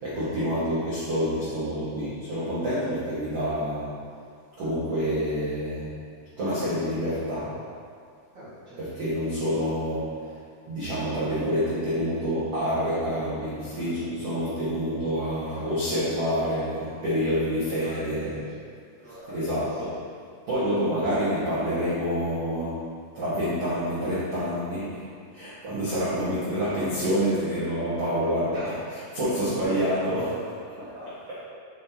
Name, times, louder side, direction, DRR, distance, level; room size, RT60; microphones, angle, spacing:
voice 1, 0.0-3.9 4.6-5.9 6.4-7.6 8.8-10.3 10.7-18.5 19.3-20.0 20.5-22.9 23.1-25.0 25.3-30.9 31.3-31.4, equal, 90° right, -12 dB, 1.3 m, -27 dB
voice 2, 8.3-9.1 17.4-18.2 18.6-18.7 19.0-19.8 28.5-28.7 29.3-29.8 30.8-31.4, equal, 65° right, -14 dB, 1.1 m, -46 dB
8.8 x 6.7 x 3.0 m, 2.3 s
omnidirectional pair, 5.7 m